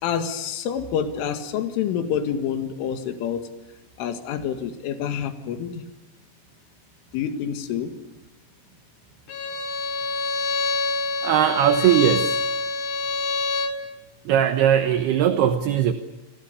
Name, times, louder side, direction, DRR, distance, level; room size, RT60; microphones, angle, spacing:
voice 1, 0.0-3.4 4.0-5.8 7.1-7.9, left 8 dB, 75° left, 7 dB, 4.4 m, -27 dB
Bowed string instrument, 9.3-13.8, left 3 dB, 55° left, 4.1 m, -26 dB
voice 2, 11.2-12.4 14.3-15.9, right 10 dB, 70° right, 8 dB, 2.6 m, -19 dB
28.5 x 24.5 x 6.9 m, 1.0 s
omnidirectional pair, 5.8 m